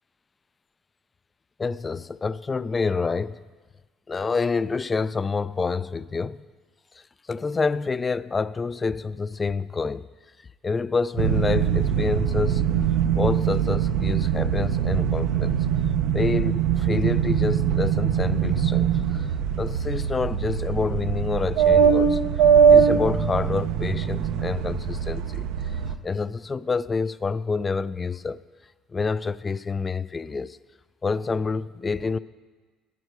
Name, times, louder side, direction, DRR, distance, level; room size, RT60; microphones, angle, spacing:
voice 1, 1.6-3.4 4.1-6.4 7.3-10.1 10.6-12.6 13.2-15.6 16.1-18.9 19.1-19.3 19.6-22.2 22.7-25.5 26.0-28.4 28.9-30.6 31.0-32.2, left 4 dB, 25° left, 0.3 m, -27 dB
sound 1, 11.2-25.9, right 7 dB, 85° right, 0.6 m, -22 dB
11.0 x 10.5 x 4.8 m
supercardioid pair, 90°, 0 cm